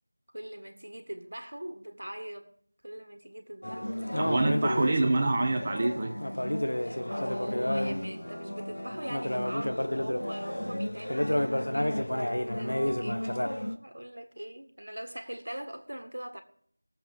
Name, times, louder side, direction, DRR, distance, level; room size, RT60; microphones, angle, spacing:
voice 1, 0.3-2.5 2.8-4.4 6.8-12.3 12.5-13.5 13.8-16.4, right 1 dB, 80° right, 1.7 m, -41 dB
sound 1, 3.6-13.8, left 1 dB, 80° left, 1.0 m, -31 dB
voice 2, 4.2-6.2, right 2 dB, 20° right, 1.0 m, -26 dB
19.5 x 7.3 x 3.5 m
figure-of-eight pair, 175°, 0 cm